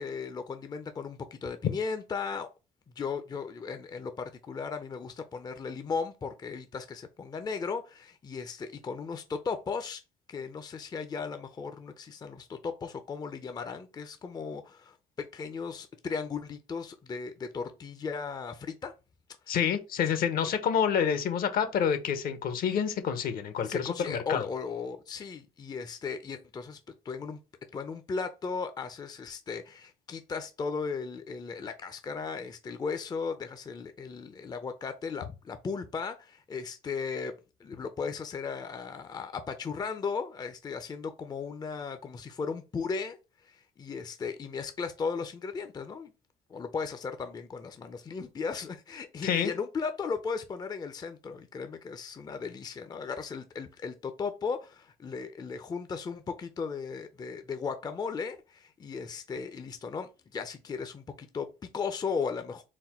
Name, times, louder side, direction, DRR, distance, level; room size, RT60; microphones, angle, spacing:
voice 1, 0.0-2.5 3.0-10.0 10.3-18.9 19.5-19.6 23.6-26.8 27.0-27.4 27.7-37.3 37.6-43.2 43.4-46.1 46.5-62.6, left 5 dB, 25° left, 0.5 m, -36 dB
voice 2, 19.5-24.4 49.2-49.5, left 7 dB, 60° left, 0.8 m, -28 dB
4.1 x 2.1 x 4.1 m
cardioid pair, 110°, 17 cm